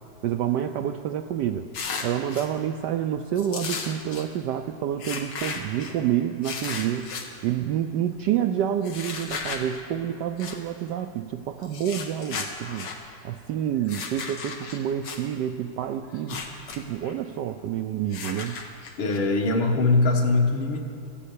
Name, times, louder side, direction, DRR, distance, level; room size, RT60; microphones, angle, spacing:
voice 1, 0.2-1.7 2.0-7.1 7.4-12.9 13.2-16.4 16.7-18.6, right 10 dB, 85° right, 8 dB, 0.9 m, -28 dB
sound 1, 1.7-2.5 3.4-4.3 5.0-5.9 6.4-7.3 8.8-9.6 10.4-10.6 11.6-13.0 13.8-15.2 16.1-16.8 17.0-17.1 18.1-19.2, left 5 dB, 90° left, 2.3 m, -34 dB
voice 2, 19.0-20.9, left 3 dB, 70° left, 2 dB, 2.3 m, -22 dB
14.0 x 11.0 x 8.5 m, 2.4 s
omnidirectional pair, 2.4 m